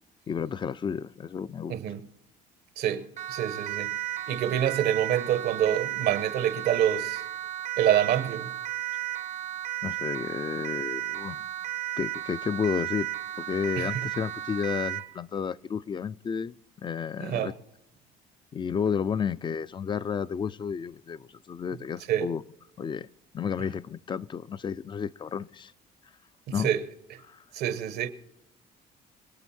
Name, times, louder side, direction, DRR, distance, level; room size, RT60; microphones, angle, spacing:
voice 1, 0.3-1.7 9.8-11.5 12.0-13.1 13.4-16.5 16.8-17.5 18.5-22.4 22.8-23.1 23.3-25.7 26.5-26.7 27.2-27.4, left 7 dB, 30° left, 0.4 m, -31 dB
voice 2, 1.7-2.1 2.8-3.9 4.3-7.2 7.8-8.5 13.8-14.0 17.2-17.5 22.1-22.3 26.6-26.8 27.5-28.1, right 10 dB, 75° right, 1.1 m, -27 dB
Siren, 3.2-15.1, right 14 dB, 45° right, 0.7 m, -34 dB
25.0 x 8.9 x 4.3 m
cardioid pair, 110°, 17 cm